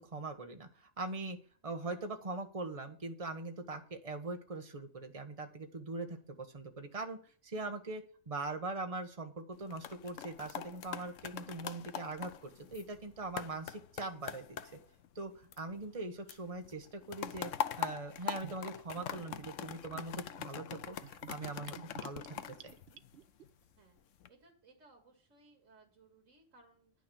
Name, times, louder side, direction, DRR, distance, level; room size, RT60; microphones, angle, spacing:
voice 1, 0.0-1.4 1.6-14.6 15.1-17.5 17.8-22.7, right 3 dB, 30° right, 6 dB, 1.3 m, -42 dB
sound 1, 9.5-16.0 16.3-23.5 24.0-24.3, left 9 dB, 85° left, 1.1 m, -43 dB
Gurgling / Bathtub (filling or washing), 18.4-23.4, right 9 dB, 60° right, 0.9 m, -53 dB
voice 2, 24.3-26.9, right 3 dB, 90° right, 1 dB, 2.4 m, -63 dB
10.0 x 6.4 x 7.0 m, 0.43 s
omnidirectional pair, 1.3 m